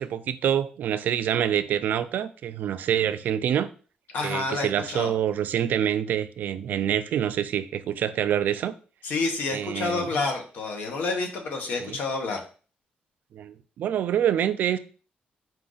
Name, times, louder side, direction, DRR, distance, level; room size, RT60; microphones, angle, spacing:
voice 1, 0.0-3.7 4.2-8.7 9.5-10.1 11.8-12.0 13.3-14.8, right 9 dB, 70° right, 0.4 m, -26 dB
voice 2, 4.1-5.1 9.0-12.4, left 3 dB, 75° left, 1.0 m, -29 dB
4.6 x 2.5 x 3.8 m
cardioid pair, 150°, 3 cm